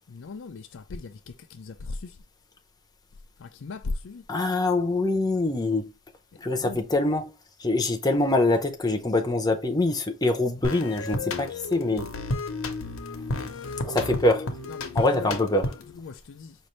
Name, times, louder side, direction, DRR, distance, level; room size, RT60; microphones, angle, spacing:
voice 1, 0.1-2.2 3.4-4.2 6.5-6.8 13.3-13.5 14.7-15.4 15.9-16.6, left 3 dB, 60° left, 0.4 m, -38 dB
voice 2, 4.3-5.9 6.4-7.3 7.6-12.1 13.8-14.5 14.9-15.7, left 2 dB, 20° left, 0.7 m, -24 dB
sound 1, 10.6-16.0, left 2 dB, 80° left, 0.9 m, -32 dB
5.2 x 2.6 x 3.1 m
head